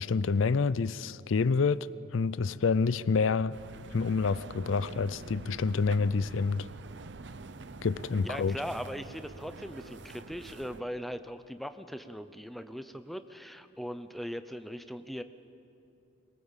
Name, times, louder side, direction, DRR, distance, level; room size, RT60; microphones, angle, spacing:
voice 1, 0.0-1.9 2.1-3.6 3.9-6.7 7.8-8.6, left 4 dB, 80° left, 0.5 m, -28 dB
sound 1, 3.5-10.8, right 3 dB, 60° right, 0.7 m, -46 dB
voice 2, 8.2-15.2, equal, ahead, 0.7 m, -39 dB
23.5 x 22.0 x 7.3 m
head